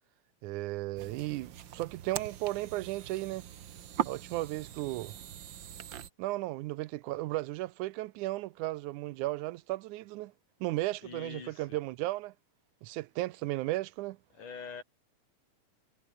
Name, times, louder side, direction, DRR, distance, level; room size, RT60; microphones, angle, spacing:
voice 1, 0.4-3.5 4.1-5.2 6.2-10.3 10.6-12.3 12.8-14.2, right 18 dB, 80° right, 2.1 m, -35 dB
sound 1, 1.0-6.1, right 10 dB, 60° right, 1.3 m, -41 dB
voice 2, 11.0-11.8 14.3-14.8, left 5 dB, 85° left, 5.7 m, -44 dB
omnidirectional pair, 3.5 m